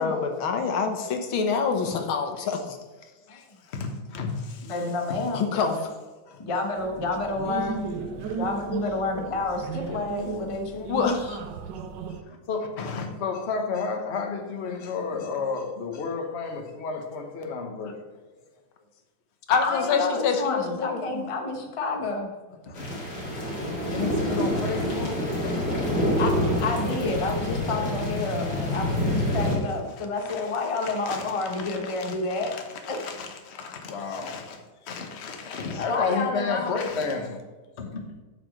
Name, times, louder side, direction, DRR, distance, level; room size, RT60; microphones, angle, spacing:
voice 1, 0.0-2.8 5.3-5.9 10.9-11.4 19.5-21.2, left 5 dB, 85° left, 2.0 m, -26 dB
voice 2, 3.6-4.7 5.1-5.2 6.3-6.4 8.2-8.4 12.3-18.0 22.7-22.9 23.8-25.6 29.3-29.6 30.0-37.4 37.8-38.2, left 4 dB, 40° left, 1.2 m, -32 dB
voice 3, 4.6-5.5 6.4-7.8 8.4-10.9 14.8-15.0 19.6-22.3 26.2-32.5 32.9-33.0 35.7-36.7, left 3 dB, 20° left, 0.9 m, -29 dB
sound 1, 6.8-12.2, right 5 dB, 70° right, 1.3 m, -35 dB
sound 2, 22.7-29.6, equal, 55° left, 2.9 m, -27 dB
7.9 x 6.0 x 6.6 m
omnidirectional pair, 2.2 m